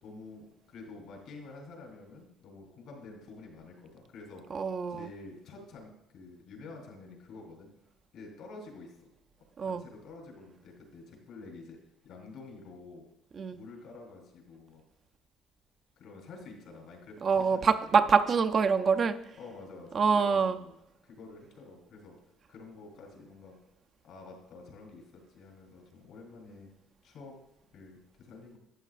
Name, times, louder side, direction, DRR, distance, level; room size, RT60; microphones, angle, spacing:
voice 1, 0.0-4.4 4.9-7.7 8.1-8.9 9.6-11.8 12.0-13.0 13.5-14.8 16.0-17.7 19.4-20.7 21.0-22.2 22.5-23.6 24.0-26.7 27.0-27.3 27.7-28.6, left 3 dB, 70° left, 1 dB, 3.3 m, -49 dB
voice 2, 4.5-5.1 9.6-9.8 13.4-13.6 17.2-19.2 19.9-20.6, right 5 dB, 40° right, 8 dB, 0.5 m, -25 dB
12.5 x 8.1 x 2.5 m, 0.81 s
cardioid pair, 120°, 0 cm